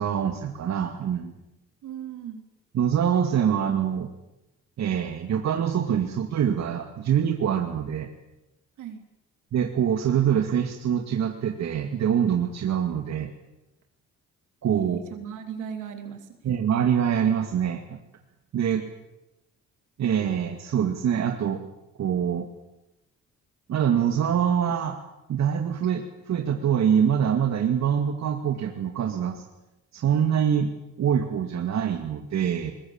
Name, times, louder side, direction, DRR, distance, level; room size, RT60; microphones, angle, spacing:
voice 1, 0.0-1.3 2.7-4.1 4.8-8.1 9.5-13.3 14.6-15.0 16.4-18.0 18.5-18.8 20.0-21.6 22.0-22.5 23.7-25.0 25.3-29.4 29.9-30.7 31.0-32.7, right 8 dB, 65° right, 4 dB, 2.2 m, -24 dB
voice 2, 1.8-2.4 8.8-9.0 14.7-16.4, right 8 dB, 85° right, 6 dB, 3.6 m, -37 dB
20.5 x 20.5 x 8.8 m, 0.94 s
cardioid pair, 90°, 30 cm